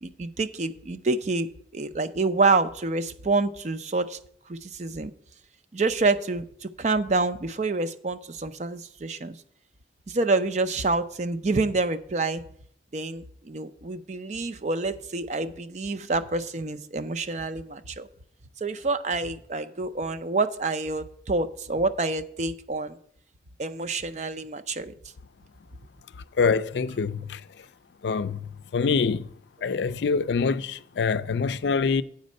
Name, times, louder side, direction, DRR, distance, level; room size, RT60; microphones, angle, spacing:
voice 1, 0.0-1.5 1.7-4.2 4.5-5.1 5.7-9.4 10.1-12.4 12.9-18.1 18.6-23.0 23.6-24.9, right 3 dB, 40° right, 0.5 m, -27 dB
voice 2, 26.4-27.4 28.0-28.4 28.7-29.2 29.6-32.0, left 5 dB, 80° left, 0.4 m, -25 dB
8.3 x 5.2 x 6.4 m
head